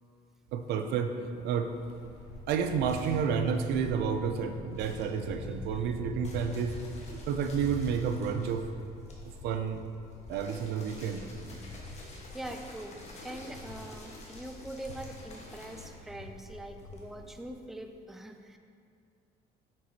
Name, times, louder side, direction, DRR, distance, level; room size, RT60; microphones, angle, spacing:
voice 1, 0.5-1.7 2.5-6.8 7.3-8.7 9.4-9.8 10.3-11.3, right 7 dB, 80° right, 7 dB, 0.5 m, -30 dB
sound 1, 1.7-17.5, left 2 dB, 85° left, 0.9 m, -44 dB
sound 2, 1.9-4.3 4.7-17.4, left 1 dB, 40° left, 1.3 m, -51 dB
voice 2, 12.3-18.6, right 1 dB, ahead, 5 dB, 0.4 m, -43 dB
7.4 x 6.0 x 2.8 m, 2.3 s
cardioid pair, 110°, 17 cm